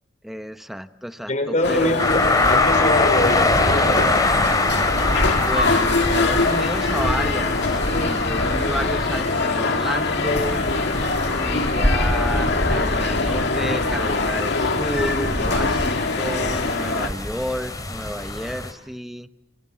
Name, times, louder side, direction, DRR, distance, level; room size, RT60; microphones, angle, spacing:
voice 1, 0.2-2.0 5.3-10.6 11.4-19.3, equal, ahead, 10 dB, 1.0 m, -31 dB
voice 2, 1.3-2.2 2.5-3.9, left 1 dB, 40° left, 8 dB, 4.7 m, -23 dB
sound 1, 1.6-17.1, left 3 dB, 60° left, 2.1 m, -24 dB
sound 2, 2.0-18.7, left 2 dB, 20° left, 2.9 m, -24 dB
29.5 x 26.0 x 7.5 m, 0.84 s
head